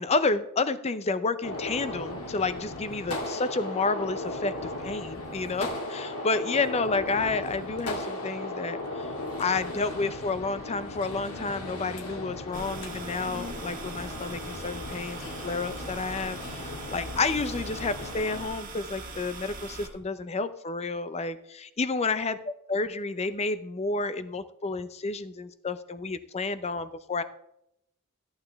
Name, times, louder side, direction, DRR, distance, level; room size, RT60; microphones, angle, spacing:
voice 1, 0.0-4.5 4.8-9.1 9.4-27.2, left 3 dB, 30° left, 13 dB, 0.5 m, -30 dB
Gunshot gunfire, 1.4-18.4, left 2 dB, 75° left, 2.0 m, -37 dB
sound 1, 12.5-19.9, right 2 dB, 40° right, 1.6 m, -41 dB
14.0 x 8.8 x 3.5 m, 0.79 s
head